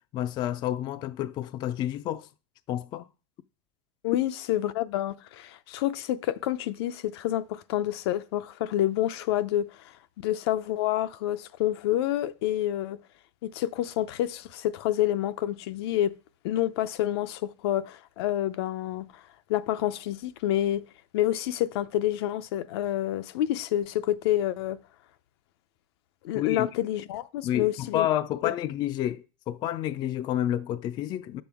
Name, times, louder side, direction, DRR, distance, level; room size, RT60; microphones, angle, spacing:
voice 1, 0.1-2.3 2.7-3.1 26.3-26.7 27.4-31.4, left 12 dB, 35° left, 0.3 m, -29 dB
voice 2, 4.0-9.8 10.2-13.0 13.4-16.1 16.4-19.0 19.5-20.8 21.1-24.8 26.2-28.1 28.4-28.5, left 13 dB, 75° left, 0.6 m, -28 dB
9.2 x 7.2 x 3.5 m
supercardioid pair, 145°, 13 cm